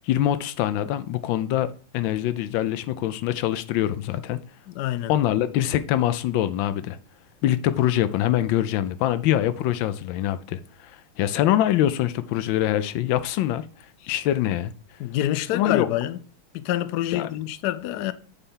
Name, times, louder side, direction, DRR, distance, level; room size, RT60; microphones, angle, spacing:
voice 1, 0.0-4.4 5.1-7.0 7.4-13.6 14.1-14.7 15.5-15.9 17.1-17.3, left 12 dB, 75° left, 1.2 m, -24 dB
voice 2, 4.7-5.1 15.0-16.2 16.5-18.1, left 13 dB, 90° left, 0.8 m, -27 dB
8.3 x 3.4 x 5.5 m
omnidirectional pair, 2.3 m